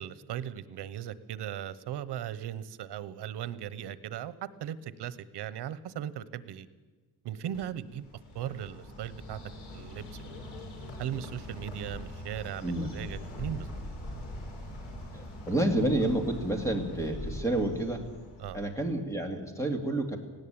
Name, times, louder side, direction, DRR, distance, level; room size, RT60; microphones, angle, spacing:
voice 1, 0.0-4.3 4.6-6.7 7.2-8.1 8.3-9.4 9.7-10.0 11.0-13.7 18.4-18.6, right 10 dB, 80° right, 16 dB, 1.1 m, -38 dB
Bird, 7.5-18.9, left 1 dB, 75° left, 6.2 m, -42 dB
voice 2, 12.6-12.9 15.1-18.0 18.5-20.2, right 1 dB, 10° left, 4 dB, 2.3 m, -29 dB
18.5 x 17.0 x 8.9 m, 1.3 s
wide cardioid pair, 175°, 40 cm